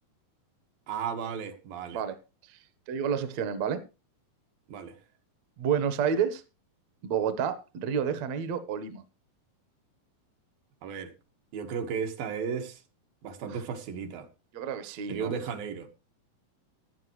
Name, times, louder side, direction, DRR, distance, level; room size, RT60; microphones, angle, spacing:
voice 1, 0.9-2.0 4.7-5.0 10.8-11.1 11.5-12.8 13.2-14.3 15.1-15.9, right 6 dB, 80° right, 3.5 m, -34 dB
voice 2, 2.9-3.8 5.6-6.4 7.0-9.0 14.5-15.3, right 7 dB, 60° right, 2.1 m, -29 dB
16.5 x 10.5 x 3.1 m
omnidirectional pair, 4.1 m